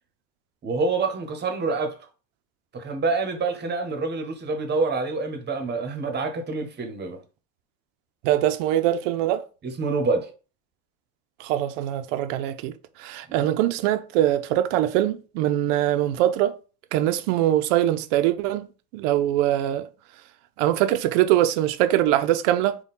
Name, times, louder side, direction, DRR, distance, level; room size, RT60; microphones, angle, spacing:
voice 1, 0.6-2.0 2.7-7.2 9.6-10.3 13.3-13.5, right 3 dB, 30° right, 0.9 m, -27 dB
voice 2, 8.2-9.4 11.4-12.7 13.0-16.5 16.9-18.7 18.9-19.9 20.6-22.8, right 13 dB, 80° right, 0.6 m, -22 dB
3.7 x 2.3 x 4.1 m
supercardioid pair, 120°, 37 cm